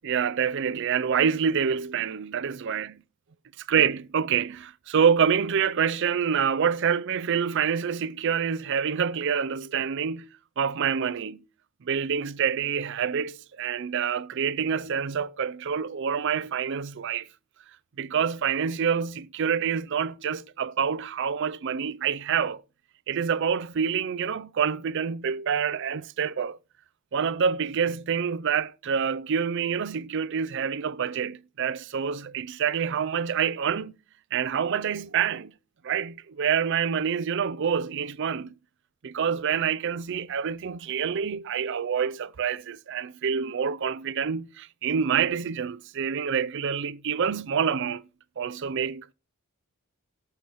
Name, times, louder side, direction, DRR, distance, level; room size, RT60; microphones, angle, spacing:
voice 1, 0.0-2.9 3.7-10.3 10.6-11.4 11.9-17.3 18.0-22.6 23.1-26.6 27.1-33.9 34.3-35.5 35.8-38.5 39.0-48.0 48.4-49.1, right 7 dB, 55° right, 0.4 m, -27 dB
17.5 x 6.9 x 3.0 m
head